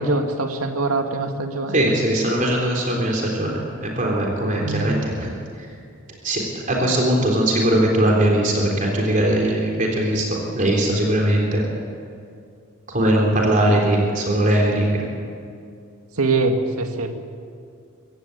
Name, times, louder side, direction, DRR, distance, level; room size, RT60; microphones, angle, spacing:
voice 1, 0.0-1.8 4.6-4.9 16.2-17.2, right 3 dB, 85° right, 4 dB, 2.3 m, -23 dB
voice 2, 1.7-5.3 6.2-6.4 6.7-11.6 12.9-15.0, right 1 dB, 35° right, -1 dB, 3.6 m, -20 dB
25.0 x 15.0 x 8.9 m, 2.3 s
head